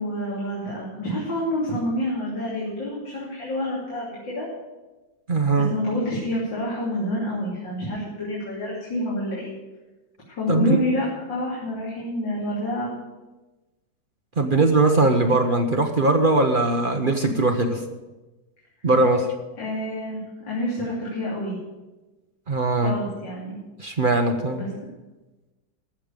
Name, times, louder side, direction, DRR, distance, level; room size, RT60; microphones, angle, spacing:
voice 1, 0.0-4.5 5.5-9.5 10.3-12.9 19.6-20.2 20.5-21.6 22.8-23.6 24.5-24.7, left 1 dB, 70° left, -6 dB, 3.7 m, -28 dB
voice 2, 5.3-5.7 10.5-10.8 14.4-17.8 18.8-19.3 22.5-22.9 23.8-24.6, right 2 dB, 40° right, 4 dB, 0.8 m, -20 dB
14.5 x 6.7 x 8.9 m, 1.1 s
omnidirectional pair, 2.1 m